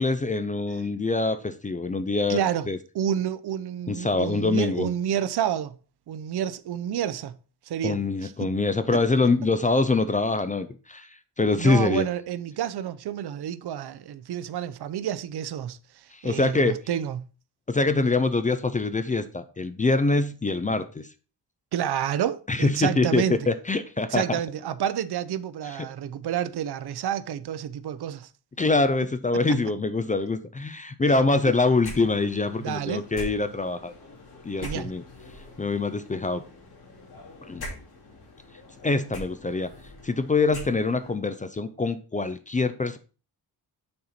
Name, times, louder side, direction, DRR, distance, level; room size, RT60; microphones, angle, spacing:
voice 1, 0.0-2.4 2.7-2.8 3.9-4.9 7.8-11.1 11.4-12.1 16.1-16.8 17.7-21.1 22.5-24.2 28.6-33.9 34.4-35.0 35.6-36.4 37.5-37.7 38.8-39.7 40.0-43.0, left 3 dB, 20° left, 0.3 m, -24 dB
voice 2, 2.3-2.7 2.9-5.8 6.1-7.4 7.7-8.5 11.6-17.2 21.7-23.5 24.1-28.3 32.6-33.1 34.6-34.9, right 10 dB, 75° right, 0.6 m, -29 dB
sound 1, 31.8-41.2, left 1 dB, 70° left, 2.6 m, -43 dB
6.5 x 4.2 x 4.3 m
wide cardioid pair, 155°, 39 cm